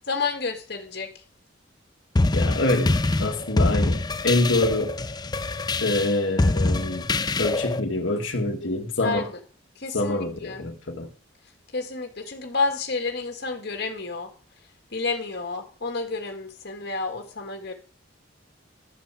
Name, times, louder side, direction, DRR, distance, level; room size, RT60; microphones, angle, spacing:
voice 1, 0.1-1.1 9.0-9.4 9.8-10.6 11.7-14.3 14.9-17.7, left 4 dB, 55° left, 2.0 m, -30 dB
sound 1, 2.2-7.8, left 2 dB, 20° left, 0.5 m, -24 dB
voice 2, 2.3-4.9 5.8-7.1 7.4-9.2 9.9-11.1, left 2 dB, 85° left, 1.6 m, -25 dB
12.5 x 5.7 x 8.2 m
head